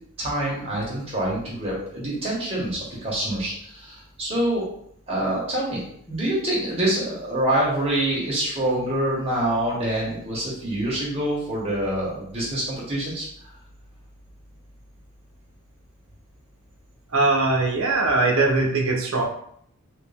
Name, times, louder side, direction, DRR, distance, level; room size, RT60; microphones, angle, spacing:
voice 1, 0.2-4.7 5.1-13.3, right 1 dB, 25° right, -6 dB, 1.4 m, -26 dB
voice 2, 17.1-19.2, right 3 dB, 65° right, 0 dB, 0.8 m, -21 dB
3.2 x 2.9 x 3.4 m, 0.67 s
head